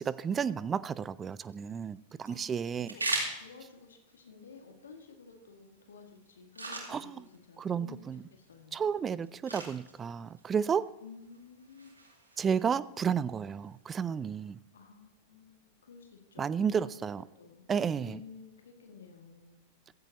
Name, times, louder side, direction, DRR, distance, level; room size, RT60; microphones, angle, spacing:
voice 1, 0.0-2.9 6.9-7.2 7.6-8.2 8.7-10.9 12.4-14.6 16.4-17.2 17.7-18.2, right 7 dB, 20° right, 0.4 m, -32 dB
sound 1, 1.2-14.2, right 2 dB, 80° right, 3.7 m, -43 dB
voice 2, 2.3-3.1 3.4-8.9 11.0-11.9 14.7-17.0 17.4-17.6 18.0-19.6, left 5 dB, 65° left, 2.1 m, -52 dB
16.0 x 14.5 x 3.0 m
figure-of-eight pair, 90°, 0 cm